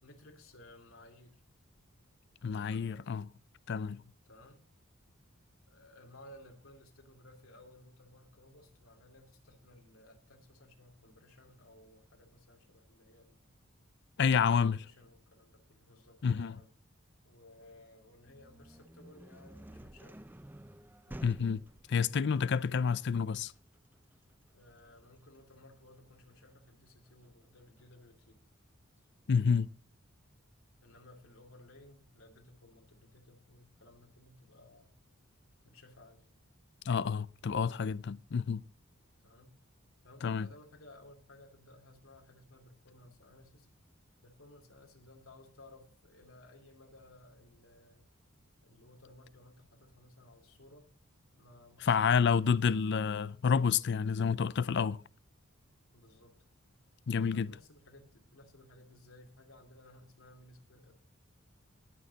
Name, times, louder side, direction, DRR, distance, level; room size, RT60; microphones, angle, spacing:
voice 1, 0.0-1.4 2.4-3.0 4.2-4.6 5.7-13.4 14.2-16.7 17.2-20.2 21.1-21.3 24.5-28.4 30.8-34.9 35.6-36.3 39.2-39.5 40.0-43.7 44.2-48.1 48.6-50.9 51.3-52.8 54.0-54.4 55.9-56.3 57.2-61.0, left 1 dB, 80° left, 2.6 m, -58 dB
voice 2, 2.4-3.3 3.7-4.0 14.2-14.8 16.2-16.6 21.2-21.6 21.9-23.5 29.3-29.7 36.8-38.6 40.2-40.5 51.8-55.0 57.1-57.5, left 6 dB, 55° left, 0.4 m, -29 dB
sound 1, 18.2-28.0, right 1 dB, 10° right, 0.5 m, -53 dB
19.0 x 6.6 x 4.0 m
head